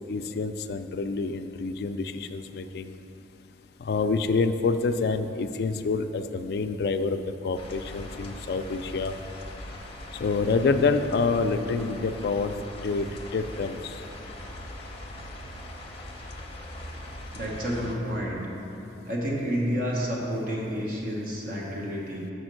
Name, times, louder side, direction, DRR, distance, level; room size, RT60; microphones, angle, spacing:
voice 1, 0.1-2.9 3.8-9.2 10.2-13.9, left 4 dB, 55° left, 9 dB, 0.3 m, -27 dB
sound 1, 7.5-17.9, left 1 dB, 30° left, 0.6 m, -41 dB
voice 2, 17.3-18.4 19.0-22.3, equal, 50° right, -3 dB, 1.2 m, -30 dB
6.4 x 4.4 x 6.3 m, 2.9 s
head